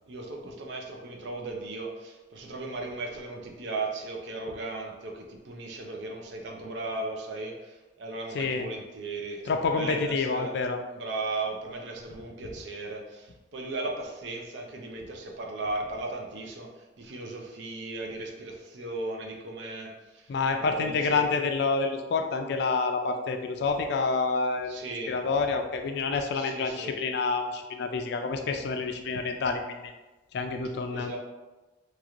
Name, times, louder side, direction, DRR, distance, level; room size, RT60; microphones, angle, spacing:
voice 1, 0.1-10.5 10.9-21.3 24.7-25.2 26.3-27.0 30.9-31.2, right 2 dB, 75° right, 1 dB, 0.6 m, -37 dB
voice 2, 8.3-8.7 9.5-10.8 20.3-24.8 25.1-29.8 30.3-31.1, left 4 dB, 65° left, 5 dB, 0.3 m, -28 dB
3.0 x 3.0 x 2.5 m, 1.1 s
head